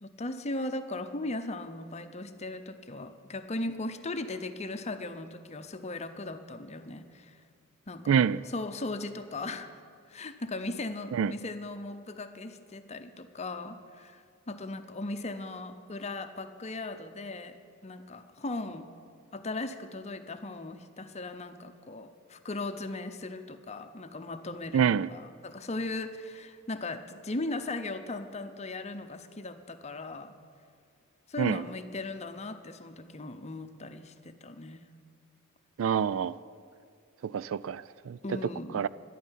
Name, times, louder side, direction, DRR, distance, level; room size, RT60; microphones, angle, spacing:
voice 1, 0.0-7.4 7.9-8.2 8.5-9.7 10.1-18.9 19.3-24.8 25.1-30.4 31.3-34.8 38.2-38.8, left 2 dB, 30° left, 9 dB, 0.8 m, -38 dB
voice 2, 8.1-8.4 11.1-11.3 24.7-25.1 31.4-31.6 35.8-36.4 37.2-38.4 38.7-38.9, right 7 dB, 65° right, 18 dB, 0.3 m, -27 dB
11.5 x 9.3 x 10.0 m, 2.1 s
head